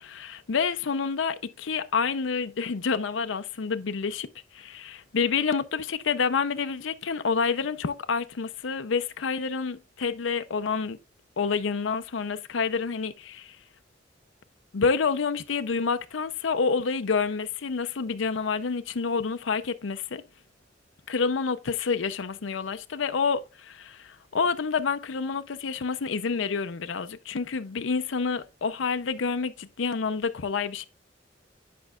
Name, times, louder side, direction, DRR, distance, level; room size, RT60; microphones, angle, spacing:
voice 1, 0.0-11.0 11.4-13.6 14.7-20.2 21.1-30.9, left 5 dB, 90° left, 0.6 m, -28 dB
10.0 x 5.3 x 2.3 m
head